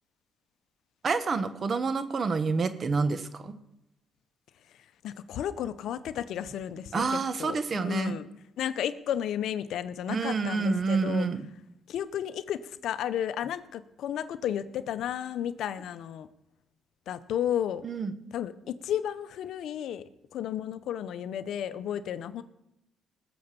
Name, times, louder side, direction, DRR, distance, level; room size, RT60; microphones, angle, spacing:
voice 1, 1.0-3.5 6.9-8.1 10.1-11.5 17.8-18.1, right 4 dB, 45° right, 12 dB, 1.3 m, -28 dB
voice 2, 5.0-8.3 8.6-11.3 11.9-16.3 17.1-17.8 18.3-20.0 20.3-22.4, left 10 dB, 75° left, 14 dB, 0.8 m, -33 dB
19.5 x 7.0 x 6.8 m, 0.85 s
cardioid pair, 90°, 0 cm